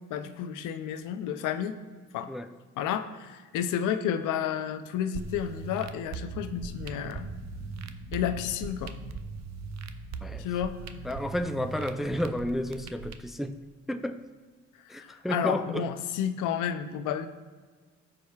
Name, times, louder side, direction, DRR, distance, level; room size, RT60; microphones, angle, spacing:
voice 1, 0.1-1.8 2.1-2.3 2.8-7.3 8.1-8.9 10.4-10.7 15.0-17.3, left 9 dB, 90° left, 10 dB, 0.6 m, -31 dB
sound 1, 5.1-13.1, right 7 dB, 60° right, 0.6 m, -40 dB
sound 2, 6.2-13.3, left 3 dB, 60° left, 1.5 m, -46 dB
voice 2, 11.0-13.6 13.9-14.2 14.9-15.9, left 1 dB, ahead, 8 dB, 0.3 m, -31 dB
14.0 x 4.9 x 2.3 m, 1.4 s
cardioid pair, 90°, 30 cm